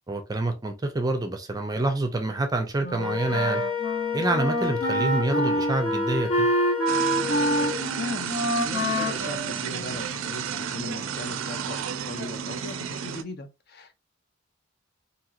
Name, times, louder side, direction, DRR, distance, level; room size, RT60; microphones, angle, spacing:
voice 1, 0.1-3.6 4.1-6.5, right 2 dB, 20° right, 0.4 m, -27 dB
Wind instrument woodwind instrument, 2.8-10.3, right 1 dB, 70° left, 1.1 m, -27 dB
Wind instrument woodwind instrument 2, 3.0-7.8, left 7 dB, 85° left, 1.3 m, -30 dB
sound 1, 6.9-13.2, right 8 dB, 85° right, 0.4 m, -32 dB
voice 2, 8.0-14.0, left 3 dB, 50° left, 0.6 m, -38 dB
2.9 x 2.8 x 2.4 m
head